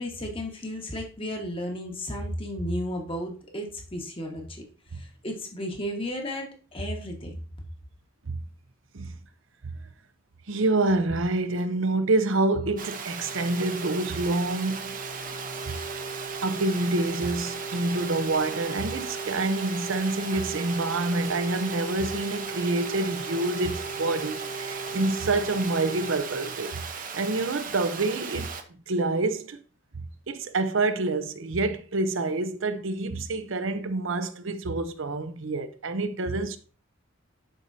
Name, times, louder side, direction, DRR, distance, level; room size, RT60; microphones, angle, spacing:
voice 1, 0.0-4.6 4.9-7.3, equal, 30° left, 1.5 m, -33 dB
voice 2, 10.5-14.9 15.7-15.8 16.4-26.8 27.1-28.5 28.9-29.6 29.9-36.6, right 2 dB, 75° right, 0.8 m, -27 dB
Water, 12.8-28.6, right 6 dB, 45° right, 0.9 m, -37 dB
sound 1, 13.1-26.2, right 3 dB, 85° left, 1.0 m, -38 dB
11.5 x 4.8 x 2.7 m
head